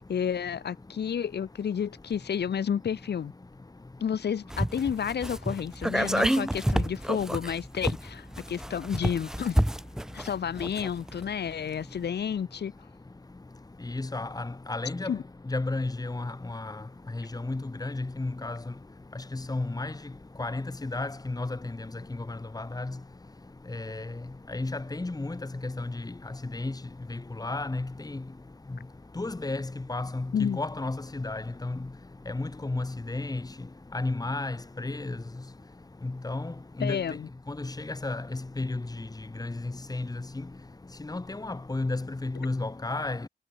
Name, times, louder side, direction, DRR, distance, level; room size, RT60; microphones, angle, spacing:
voice 1, 0.1-3.3 4.0-9.6 10.1-12.7 15.1-15.2 30.3-30.6 36.8-37.3, left 8 dB, 80° left, 1.0 m, -31 dB
sound 1, 4.5-11.2 11.5-11.6, equal, 5° right, 0.5 m, -29 dB
voice 2, 13.8-15.1 15.5-16.8 17.1-18.6 19.3-19.9 20.4-21.6 22.3-22.9 23.7-24.1 24.5-26.7 27.1-28.2 29.2-31.8 32.3-33.4 33.9-35.2 36.0-37.0 37.5-39.1 39.4-40.2 41.0-43.3, left 2 dB, 20° left, 3.2 m, -33 dB
wide cardioid pair, 135°, 17 cm